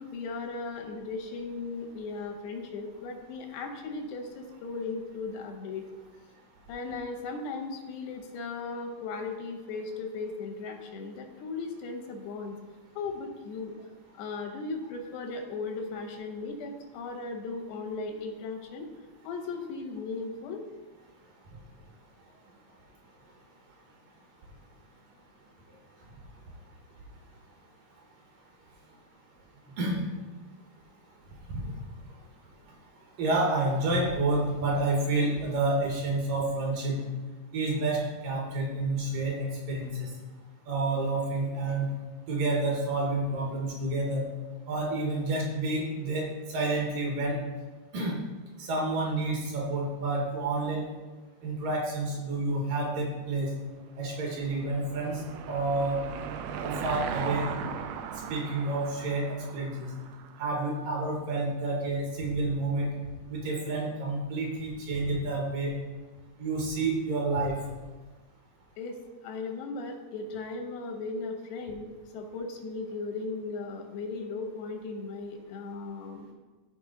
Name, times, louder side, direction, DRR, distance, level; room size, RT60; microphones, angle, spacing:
voice 1, 0.0-5.8 6.7-12.6 13.0-13.8 14.2-18.9 19.2-20.6 68.8-69.0 69.2-76.3, left 3 dB, 90° left, 4 dB, 3.2 m, -37 dB
voice 2, 33.2-37.0 37.5-40.1 40.7-41.9 42.3-44.2 44.7-47.4 47.9-48.2 48.6-50.8 51.4-53.5 54.0-55.2 55.5-56.0 56.6-57.5 58.3-59.9 60.4-62.9 63.3-65.7 66.4-67.6, right 2 dB, 65° right, -1 dB, 2.6 m, -29 dB
Car passing by / Engine, 53.8-60.6, right 7 dB, 90° right, 2.7 m, -38 dB
13.5 x 4.7 x 3.8 m, 1.3 s
omnidirectional pair, 4.7 m